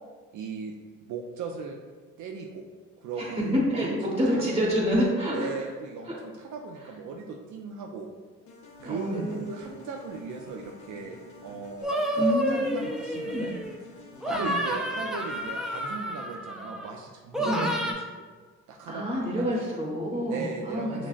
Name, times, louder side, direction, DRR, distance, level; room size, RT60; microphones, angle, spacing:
voice 1, 0.3-0.7 1.1-1.8 2.2-2.6 3.0-4.6 5.3-8.1 8.8-13.5 14.3-18.2 18.7-19.6 20.3-21.1, right 4 dB, 75° right, 1 dB, 0.4 m, -38 dB
voice 2, 3.2-5.5 8.8-9.3 12.2-13.5 14.3-14.5 17.4-17.7 18.9-21.1, equal, 20° right, -5 dB, 1.3 m, -28 dB
sound 1, 8.5-16.1, left 2 dB, 75° left, 0.7 m, -49 dB
sound 2, 11.8-13.8 14.2-16.9 17.3-17.9, right 1 dB, ahead, 0.4 m, -30 dB
5.8 x 2.0 x 2.5 m, 1.4 s
cardioid pair, 90°, 30 cm